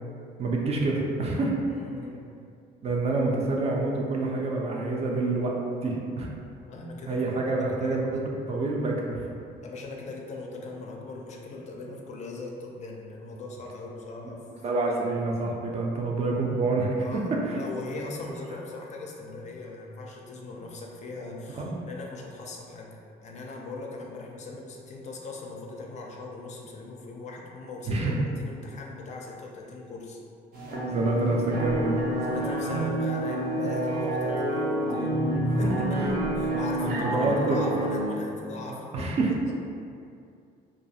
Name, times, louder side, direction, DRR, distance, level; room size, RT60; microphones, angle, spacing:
voice 1, 0.4-1.5 2.8-5.5 5.8-6.3 7.1-8.1 8.4-9.4 14.6-17.6 21.6-21.8 27.9-28.2 30.9-32.0 36.0-36.2 36.8-37.6 38.7-39.3, right 2 dB, 40° right, -1 dB, 0.4 m, -27 dB
voice 2, 1.7-2.3 6.7-8.3 9.6-14.5 14.9-15.0 17.0-23.0 23.2-30.2 32.2-35.2 35.6-35.8 36.4-39.1 39.4-39.5, left 3 dB, 45° left, -1 dB, 0.4 m, -40 dB
sound 1, 30.5-38.1, right 1 dB, 70° right, 0.7 m, -28 dB
2.4 x 2.3 x 2.7 m, 2.4 s
cardioid pair, 110°, 17 cm